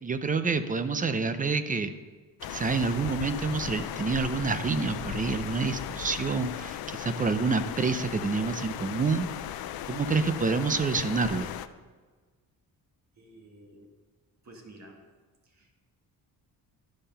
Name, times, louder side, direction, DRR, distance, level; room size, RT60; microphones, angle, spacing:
voice 1, 0.0-1.9 2.5-9.3 9.9-11.5, right 4 dB, 20° right, 11 dB, 0.5 m, -28 dB
sound 1, 2.4-11.7, left 11 dB, 75° left, 0.5 m, -37 dB
voice 2, 13.2-13.9 14.4-15.0 15.5-15.8, right 1 dB, 50° right, 1 dB, 1.7 m, -51 dB
11.5 x 5.4 x 5.7 m, 1.4 s
cardioid pair, 140°, 37 cm